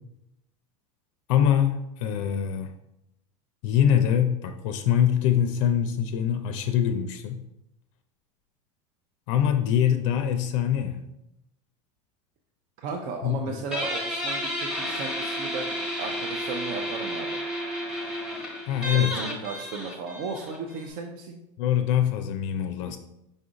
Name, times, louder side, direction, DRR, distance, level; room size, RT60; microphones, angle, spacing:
voice 1, 1.3-2.7 3.6-7.4 9.3-11.0 13.2-13.6 18.7-19.1 21.6-23.0, left 9 dB, 65° left, 7 dB, 0.4 m, -24 dB
voice 2, 12.8-17.4 18.9-21.4, right 4 dB, 55° right, 3 dB, 0.5 m, -35 dB
Guitar, 13.7-20.9, equal, 5° right, 0.9 m, -32 dB
5.2 x 2.4 x 3.9 m, 0.86 s
supercardioid pair, 135°, 17 cm